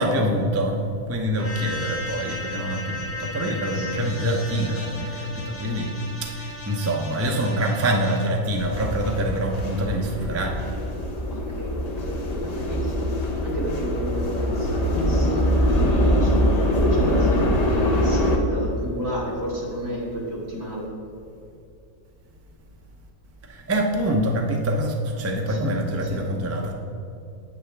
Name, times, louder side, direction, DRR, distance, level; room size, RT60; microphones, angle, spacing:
voice 1, 0.0-5.9 6.2-10.6 23.5-26.7, equal, 25° right, 2 dB, 0.3 m, -25 dB
sound 1, 1.4-8.3, left 1 dB, 10° left, 1.3 m, -36 dB
sound 2, 8.5-18.4, equal, 35° left, 0.8 m, -23 dB
voice 2, 11.3-13.1 13.4-20.9 25.4-25.7 26.0-26.2, right 1 dB, 70° right, -6 dB, 2.5 m, -32 dB
8.5 x 8.0 x 3.3 m, 2.6 s
omnidirectional pair, 1.5 m